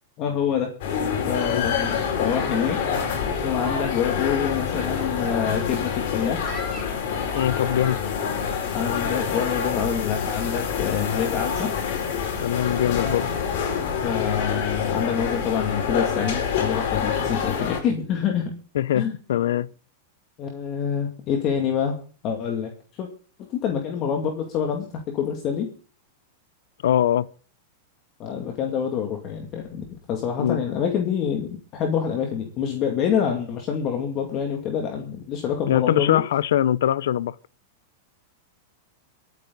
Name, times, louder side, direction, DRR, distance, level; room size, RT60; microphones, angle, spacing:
voice 1, 0.2-0.7 1.3-2.8 3.4-6.4 8.7-11.7 14.0-18.6 18.9-19.1 20.4-22.0 22.2-23.1 23.4-25.7 28.2-36.2, left 7 dB, 30° left, 2.4 m, -26 dB
sound 1, 0.8-17.8, left 7 dB, 55° left, 5.6 m, -26 dB
sound 2, 1.4-11.0, equal, 5° left, 4.5 m, -43 dB
voice 2, 7.3-8.0 12.4-13.3 18.7-19.7 26.8-27.3 30.4-30.6 35.7-37.3, left 11 dB, 80° left, 0.6 m, -22 dB
26.0 x 9.1 x 4.0 m
supercardioid pair, 155°, 0 cm